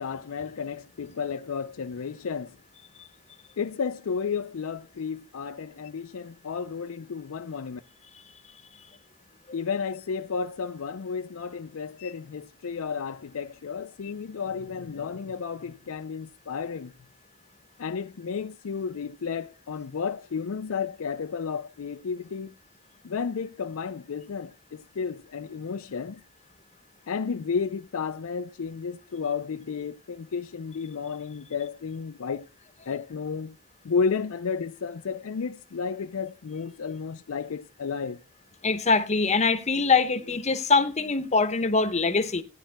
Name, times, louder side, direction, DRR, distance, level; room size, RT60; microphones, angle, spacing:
voice 1, 0.0-2.6 3.6-7.8 9.5-16.9 17.8-22.5 23.0-26.2 27.1-32.5 32.9-33.6 33.8-38.2, left 5 dB, 70° left, 0.5 m, -32 dB
voice 2, 38.6-42.4, left 4 dB, 30° left, 0.9 m, -23 dB
18.0 x 10.0 x 2.2 m
head